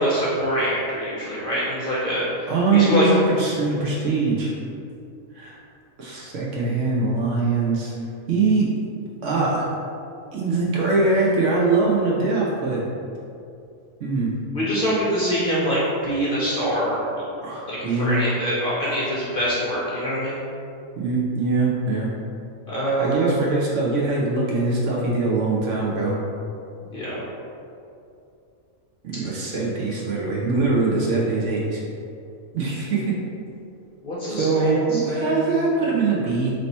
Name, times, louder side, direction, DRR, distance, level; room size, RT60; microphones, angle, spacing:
voice 1, 0.0-2.3 2.7-3.0 14.5-17.0 17.7-20.4 22.7-23.3 26.9-27.2 34.0-35.5, equal, 50° left, -7 dB, 0.7 m, -24 dB
voice 2, 2.5-4.5 5.3-5.6 6.0-8.0 8.3-8.7 9.2-9.7 10.3-12.9 14.0-14.3 17.4-18.2 21.0-22.1 23.0-26.2 29.0-31.8 32.5-33.2 34.3-36.5, right 3 dB, 65° right, -4 dB, 1.0 m, -22 dB
3.3 x 2.8 x 4.1 m, 2.6 s
omnidirectional pair, 1.5 m